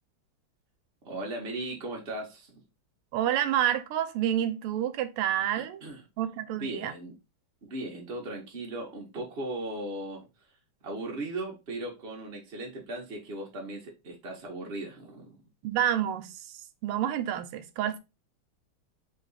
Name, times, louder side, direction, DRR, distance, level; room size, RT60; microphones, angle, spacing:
voice 1, 1.0-2.6 5.5-6.0 6.5-7.1 7.6-10.3 10.8-15.4, right 2 dB, 40° right, 0.9 m, -37 dB
voice 2, 3.1-5.8 6.2-6.9 15.6-16.3 16.8-18.0, right 11 dB, 90° right, 1.6 m, -28 dB
3.8 x 3.3 x 4.0 m
omnidirectional pair, 2.4 m